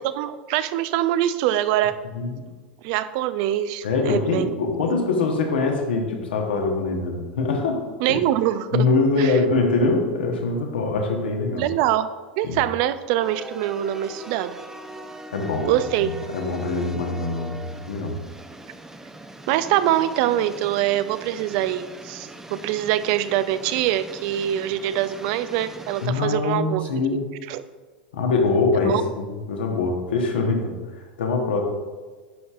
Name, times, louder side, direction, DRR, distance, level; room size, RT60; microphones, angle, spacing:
voice 1, 0.0-2.0 2.8-4.5 8.0-8.9 9.2-9.3 11.5-12.1 12.4-14.6 15.6-16.1 19.5-26.8 27.5-27.6 28.8-29.0, right 12 dB, 55° right, 14 dB, 0.4 m, -24 dB
voice 2, 3.8-7.8 8.1-8.2 8.7-11.7 12.4-12.6 15.3-18.2 26.0-27.3 28.1-31.6, left 3 dB, 75° left, 2 dB, 1.1 m, -23 dB
sound 1, 13.2-26.1, right 2 dB, 10° right, 0.6 m, -41 dB
10.5 x 5.4 x 2.5 m, 1.4 s
hypercardioid pair, 90°, 6 cm